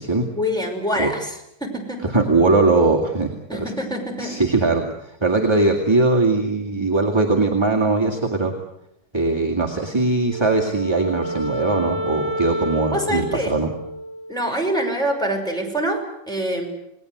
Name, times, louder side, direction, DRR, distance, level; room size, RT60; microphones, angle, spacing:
voice 1, 0.3-2.1 3.5-4.4 12.9-13.5 14.3-16.0 16.3-16.7, equal, ahead, 1 dB, 5.7 m, -25 dB
voice 2, 2.1-3.7 4.2-8.5 9.1-13.7, right 3 dB, 15° right, 1 dB, 2.2 m, -20 dB
Wind instrument woodwind instrument, 10.2-14.7, equal, 20° left, 1.1 m, -30 dB
30.0 x 19.5 x 8.0 m, 0.82 s
omnidirectional pair, 2.1 m